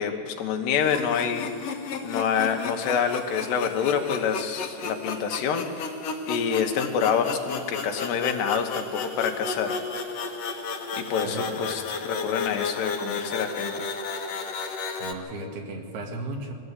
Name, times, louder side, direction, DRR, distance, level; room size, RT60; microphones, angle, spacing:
voice 1, 0.0-1.5 2.0-5.7 6.3-9.8 11.0-13.9, left 7 dB, 85° left, 4 dB, 3.5 m, -27 dB
sound 1, 0.8-15.1, left 4 dB, 60° left, 1.8 m, -33 dB
voice 2, 11.2-11.7 15.0-16.5, right 2 dB, 70° right, 2 dB, 3.9 m, -35 dB
22.5 x 15.0 x 8.3 m, 2.4 s
omnidirectional pair, 4.7 m